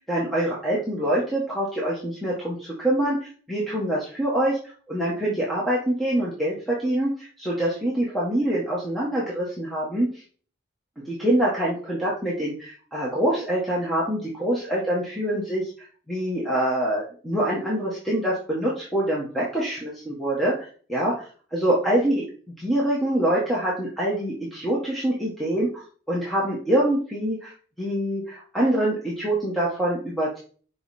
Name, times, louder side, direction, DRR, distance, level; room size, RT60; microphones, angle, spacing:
voice 1, 0.0-4.6 4.9-10.1 11.0-15.7 16.1-22.2 22.6-25.7 26.1-27.5 27.8-30.4, right 1 dB, ahead, -6 dB, 1.4 m, -25 dB
5.5 x 5.4 x 4.2 m, 0.43 s
head